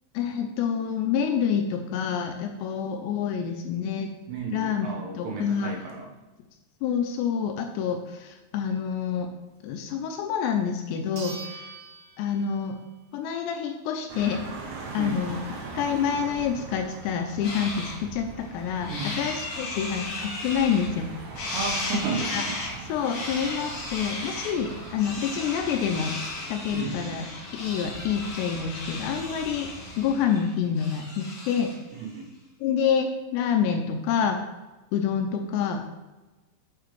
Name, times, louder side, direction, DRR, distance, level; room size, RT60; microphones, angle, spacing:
voice 1, 0.1-4.1 4.5-5.8 6.8-9.3 9.6-11.6 12.2-12.8 13.1-14.5 14.9-15.4 15.7-18.9 19.2-21.1 22.3-22.5 22.9-26.1 26.5-27.3 27.6-29.7 30.0-31.7 32.6-34.4 34.9-35.8, left 7 dB, 80° left, 5 dB, 2.6 m, -27 dB
voice 2, 4.3-6.2 15.0-15.2 18.9-19.3 21.5-22.6 26.7-27.2 31.9-32.3, right 4 dB, 75° right, -1 dB, 3.2 m, -33 dB
sound 1, 10.3-10.4 11.2-12.9 13.3-13.4 18.0-18.1 18.3-18.4 19.0-19.4, right 3 dB, 50° right, 2.3 m, -43 dB
sound 2, 14.1-30.2, right 3 dB, 90° right, 3.7 m, -42 dB
sound 3, 17.4-18.0 18.4-21.1 21.3-31.8, left 2 dB, 60° left, 2.5 m, -36 dB
6.9 x 6.6 x 3.1 m, 1.1 s
omnidirectional pair, 5.3 m